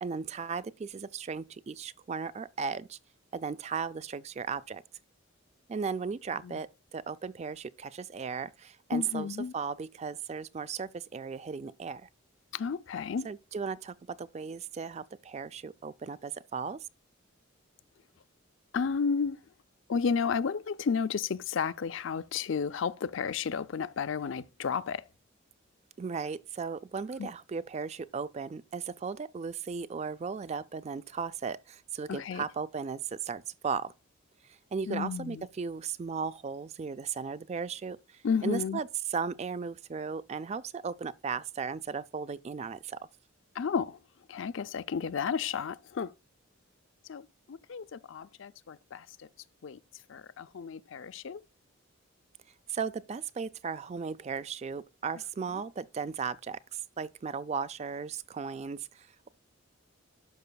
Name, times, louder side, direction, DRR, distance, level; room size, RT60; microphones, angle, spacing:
voice 1, 0.0-3.0 3.3-4.8 5.7-12.1 13.2-16.9 26.0-33.9 34.5-43.0 52.7-59.3, right 5 dB, 30° right, 0.3 m, -36 dB
voice 2, 8.9-9.5 12.5-13.3 18.7-19.4 19.9-25.0 27.2-27.3 32.1-32.4 34.9-35.4 38.2-38.8 43.5-44.0 44.3-46.1 47.1-49.3 49.6-49.8 50.1-51.4, left 6 dB, 65° left, 0.4 m, -32 dB
12.0 x 5.6 x 2.2 m
head